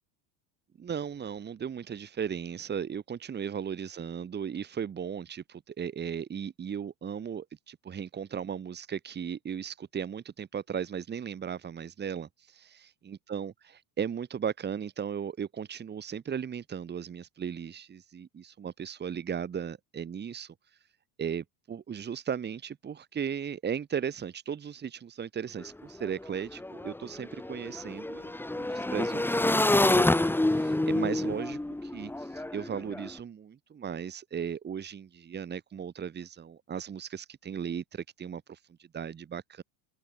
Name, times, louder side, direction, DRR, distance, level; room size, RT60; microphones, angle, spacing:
voice 1, 0.8-12.7 13.1-20.5 21.2-39.6, right 7 dB, 25° right, 3.5 m, -36 dB
Motorcycle / Engine, 25.6-25.7 25.9-33.1, left 1 dB, 5° left, 3.7 m, -28 dB
open air
supercardioid pair, 135°, 40 cm